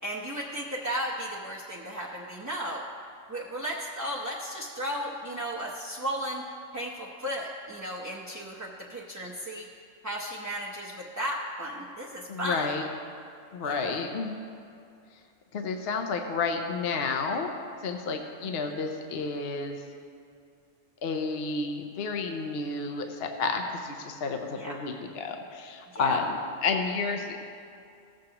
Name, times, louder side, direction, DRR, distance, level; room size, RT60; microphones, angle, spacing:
voice 1, 0.0-2.9 3.3-6.4 6.7-12.7 13.6-14.0 18.4-18.8 24.5-24.8 25.9-26.2, equal, 15° right, -5 dB, 0.6 m, -35 dB
voice 2, 12.3-12.9 13.5-14.3 15.5-17.5 17.8-19.8 21.0-27.4, left 4 dB, 55° left, 4 dB, 0.8 m, -31 dB
16.0 x 7.5 x 2.9 m, 2.5 s
omnidirectional pair, 1.4 m